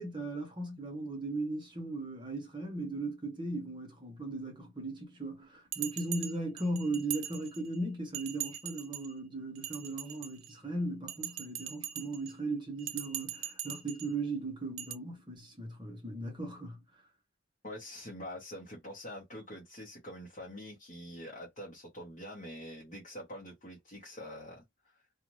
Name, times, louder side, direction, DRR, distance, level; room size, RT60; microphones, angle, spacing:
voice 1, 0.0-16.8, right 2 dB, 25° right, 0.9 m, -37 dB
Bell, 5.7-7.8 8.1-9.1 9.5-10.6 11.1-12.3 12.8-14.1 14.8-14.9, right 11 dB, 85° right, 0.5 m, -41 dB
voice 2, 17.6-25.0, equal, 40° left, 1.0 m, -45 dB
2.6 x 2.4 x 3.0 m
head